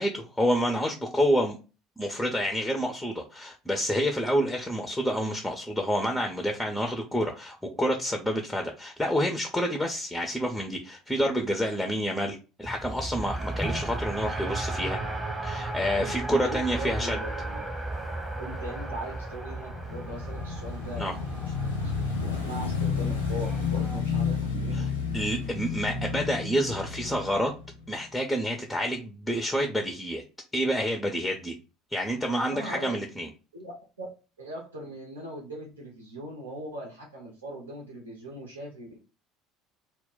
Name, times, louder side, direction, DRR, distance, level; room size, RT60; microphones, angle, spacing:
voice 1, 0.0-1.6 2.0-15.0 15.4-17.2 21.0-21.1 24.7-27.5 27.9-30.2 30.5-31.5 31.9-33.3, equal, 5° left, 3 dB, 0.4 m, -28 dB
Race car auto racing, 12.6-24.0, right 2 dB, 15° right, 0.8 m, -35 dB
voice 2, 16.0-17.6 18.4-21.1 21.5-21.9 22.2-24.8 32.5-33.0 33.5-34.1 34.4-39.0, right 1 dB, 80° right, -2 dB, 0.7 m, -40 dB
Motorcycle / Engine, 19.5-28.0, left 5 dB, 80° left, 0.5 m, -31 dB
2.1 x 2.1 x 3.7 m, 0.32 s
figure-of-eight pair, 65°, 0 cm